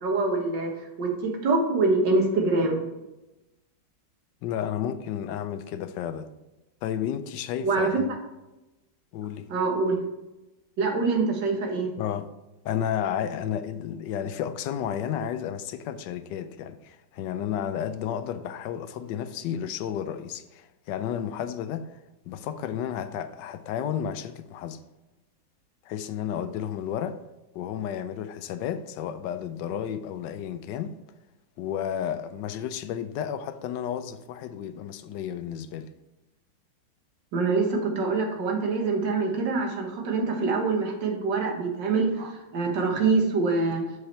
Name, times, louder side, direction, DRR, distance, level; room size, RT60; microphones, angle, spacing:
voice 1, 0.0-2.8 7.6-7.9 9.5-10.0 10.8-11.9 37.3-43.8, right 3 dB, 85° right, 1.9 m, -25 dB
voice 2, 4.4-6.3 6.8-8.1 9.1-9.5 12.0-12.3 12.6-21.9 22.3-24.8 25.9-27.2 27.5-30.9 31.6-35.9, left 9 dB, 85° left, 1.2 m, -32 dB
7.1 x 4.9 x 4.4 m
omnidirectional pair, 1.9 m